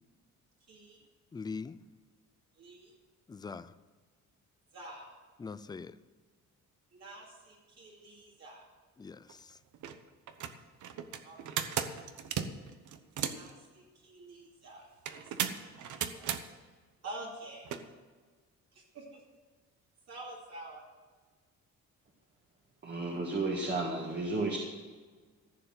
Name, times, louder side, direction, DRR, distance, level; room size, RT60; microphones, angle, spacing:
voice 1, 0.7-1.0 2.6-2.9 4.7-5.1 6.9-8.6 11.2-11.7 13.3-16.3 17.0-17.7 18.7-19.2 20.1-20.8, right 2 dB, 55° right, -3 dB, 2.7 m, -48 dB
voice 2, 1.3-1.8 3.3-3.7 5.4-6.0 9.0-9.6, left 4 dB, 15° left, 14 dB, 0.3 m, -42 dB
sound 1, 9.3-9.4 9.7-9.9 10.3-13.5 15.1-16.4 17.7-17.8, right 9 dB, 70° right, 1.0 m, -35 dB
voice 3, 22.8-24.6, right 2 dB, 35° right, -1 dB, 1.8 m, -32 dB
15.0 x 7.1 x 7.8 m, 1.4 s
cardioid pair, 155°, 31 cm